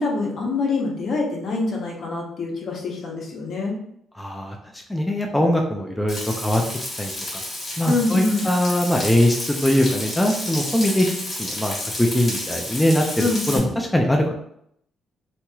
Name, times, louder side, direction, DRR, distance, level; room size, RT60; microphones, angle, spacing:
voice 1, 0.0-3.8 7.9-8.5 13.2-13.7, left 3 dB, 60° left, -1 dB, 0.8 m, -25 dB
voice 2, 4.2-4.6 4.9-6.6 7.0-7.4 7.8-11.1 11.4-14.3, left 1 dB, 5° left, 1 dB, 0.4 m, -21 dB
Frying (food), 6.1-13.6, left 1 dB, 30° left, 1.4 m, -31 dB
2.9 x 2.9 x 2.3 m, 0.72 s
cardioid pair, 90°, 0 cm